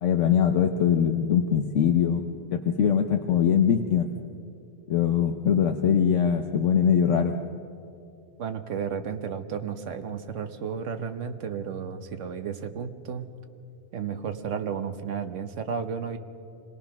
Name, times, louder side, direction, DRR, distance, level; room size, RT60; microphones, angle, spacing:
voice 1, 0.0-2.3 2.5-4.1 4.9-7.3, left 8 dB, 80° left, 5 dB, 1.2 m, -22 dB
voice 2, 8.4-13.3 13.9-16.2, right 7 dB, 85° right, 9 dB, 1.3 m, -33 dB
26.5 x 18.5 x 5.9 m, 2.6 s
omnidirectional pair, 1.2 m